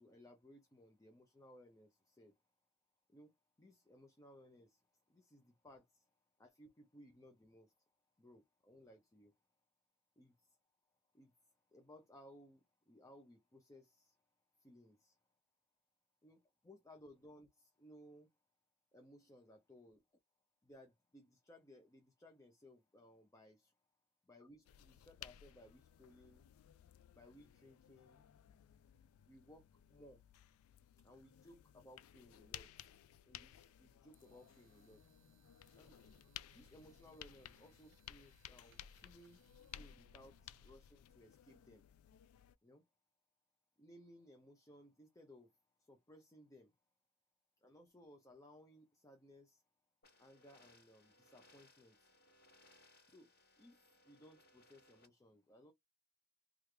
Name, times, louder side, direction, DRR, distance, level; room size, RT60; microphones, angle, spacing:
voice 1, 0.0-2.3 3.1-3.3 3.6-4.8 5.1-6.1 6.4-7.7 8.2-9.3 10.2-10.5 11.1-11.3 11.7-14.1 14.6-15.2 16.2-18.3 18.9-20.0 20.6-23.7 24.3-26.5 27.1-28.2 29.3-30.2 31.0-32.9 33.3-35.2 35.8-36.0 36.5-39.4 39.8-41.8 42.6-42.8 43.8-45.5 45.8-46.7 47.6-49.6 50.2-52.1 53.1-53.3 53.6-55.7, left 1 dB, 15° left, 0.5 m, -62 dB
sound 1, 24.7-42.6, left 11 dB, 70° left, 0.3 m, -58 dB
sound 2, 34.1-40.8, right 9 dB, 60° right, 0.3 m, -73 dB
sound 3, 50.0-55.1, left 2 dB, 50° left, 1.1 m, -68 dB
3.2 x 2.4 x 3.3 m
head